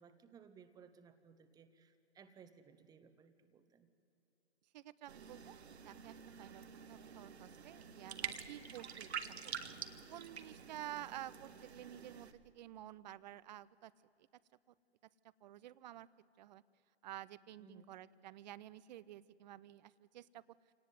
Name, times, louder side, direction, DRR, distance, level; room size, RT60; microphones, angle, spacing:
voice 1, 0.0-3.9 10.9-11.2 17.6-18.0, right 6 dB, 10° right, 9 dB, 1.1 m, -61 dB
voice 2, 4.7-5.6 5.8-9.1 9.4-9.5 10.1-13.9 15.4-16.1 16.4-16.6 17.0-20.4, right 13 dB, 40° right, 19 dB, 0.7 m, -51 dB
sound 1, 5.1-12.3, right 7 dB, 70° right, 1.5 m, -48 dB
26.5 x 18.5 x 9.5 m, 2.9 s
figure-of-eight pair, 125°, 34 cm